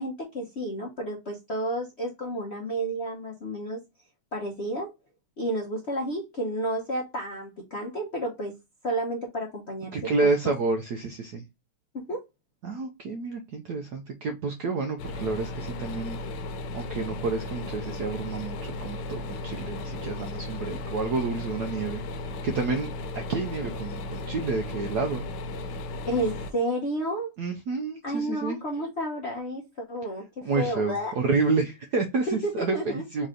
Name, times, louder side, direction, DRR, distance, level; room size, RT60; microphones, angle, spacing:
voice 1, 0.0-3.8 4.3-4.9 5.4-8.5 8.8-10.3 11.9-12.2 26.1-27.3 28.0-31.1 32.3-33.0, right 1 dB, 55° left, -1 dB, 0.7 m, -31 dB
voice 2, 9.9-11.4 12.6-16.2 16.7-22.0 22.3-22.9 23.1-25.3 27.4-28.6 30.4-33.3, right 4 dB, 75° right, 4 dB, 0.9 m, -29 dB
sound 1, 15.0-26.5, left 2 dB, 85° left, 1.6 m, -35 dB
4.1 x 3.1 x 3.7 m, 0.23 s
omnidirectional pair, 2.4 m